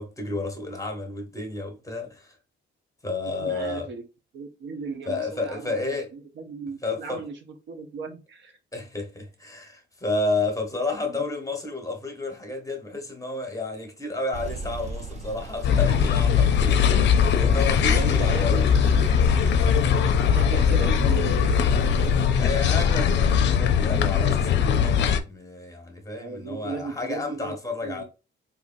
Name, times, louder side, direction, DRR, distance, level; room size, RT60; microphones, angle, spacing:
voice 1, 0.0-2.4 3.0-3.9 5.1-6.1 6.8-7.2 8.7-17.0 17.4-19.0 22.4-28.0, left 3 dB, 15° left, 1.3 m, -31 dB
voice 2, 3.4-4.0 4.3-7.4 7.7-8.6 11.0-11.2 17.8-18.7 19.9-20.0 20.3-21.6 26.2-27.5 27.8-28.0, right 4 dB, 65° right, 0.8 m, -36 dB
sound 1, 14.3-23.6, right 1 dB, 35° right, 0.7 m, -34 dB
sound 2, 15.6-25.2, left 7 dB, 65° left, 0.5 m, -20 dB
3.8 x 2.9 x 2.6 m
cardioid pair, 90°, 20 cm